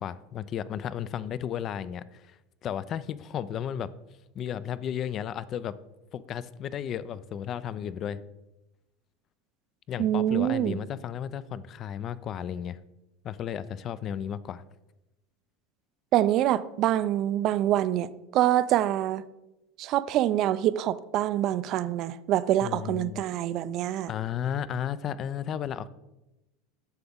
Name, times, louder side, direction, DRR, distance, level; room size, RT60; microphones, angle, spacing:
voice 1, 0.0-3.9 4.4-5.8 6.1-8.2 9.9-12.8 13.2-14.6 22.6-23.2 24.1-25.9, left 9 dB, 40° left, 0.3 m, -34 dB
voice 2, 10.0-10.8 16.1-19.2 19.8-24.1, right 12 dB, 50° right, 0.3 m, -25 dB
7.9 x 5.8 x 3.6 m
supercardioid pair, 115°, 0 cm